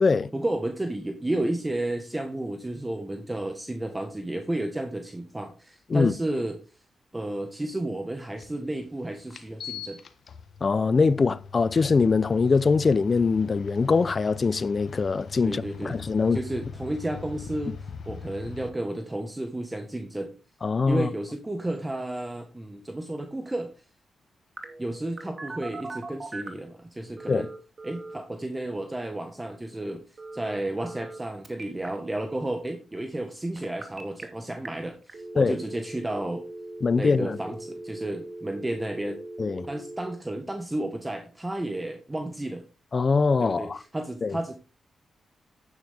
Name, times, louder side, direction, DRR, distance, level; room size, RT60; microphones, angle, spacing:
voice 1, 0.3-6.6 7.1-10.0 15.4-16.0 16.3-20.3 20.9-23.7 24.8-27.5 27.8-30.0 30.3-36.4 36.9-39.2 39.7-42.6 43.4-44.6, right 1 dB, 20° right, 1.5 m, -32 dB
sound 1, 8.4-8.5 9.3-18.7, left 5 dB, 65° left, 1.3 m, -41 dB
voice 2, 10.6-16.4 20.6-21.1 27.3-27.5 35.4-35.5 36.8-37.4 39.4-39.7 42.9-43.8 44.2-44.4, left 4 dB, 45° left, 0.6 m, -23 dB
Telephone, 24.6-26.7 27.2-28.2 30.2-31.2 31.4-31.9 33.6-34.2 34.7-34.8 35.1-40.1, right 2 dB, 40° right, 2.4 m, -40 dB
9.6 x 9.4 x 3.6 m
cardioid pair, 60°, 0 cm